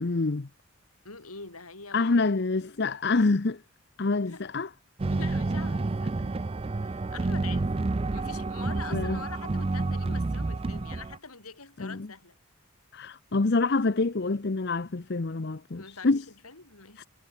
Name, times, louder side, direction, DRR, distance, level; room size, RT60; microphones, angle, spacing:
voice 1, 0.0-0.5 1.9-3.6 4.0-4.7 8.9-9.2 11.8-12.1 12.9-16.2 17.0-17.1, left 3 dB, 50° left, 0.7 m, -26 dB
voice 2, 1.1-2.1 4.3-4.5 5.1-6.4 6.8-7.8 8.1-12.4 15.7-17.1, left 4 dB, 90° left, 5.1 m, -44 dB
sound 1, 5.0-11.2, right 3 dB, 25° right, 0.4 m, -29 dB
head